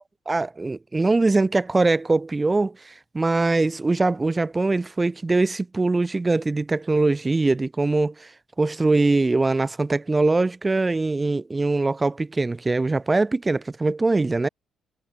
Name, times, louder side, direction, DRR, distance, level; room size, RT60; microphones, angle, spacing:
voice 1, 0.3-8.3 8.6-14.5, right 3 dB, 20° right, 3.2 m, -22 dB
cardioid pair, 90°, 0 cm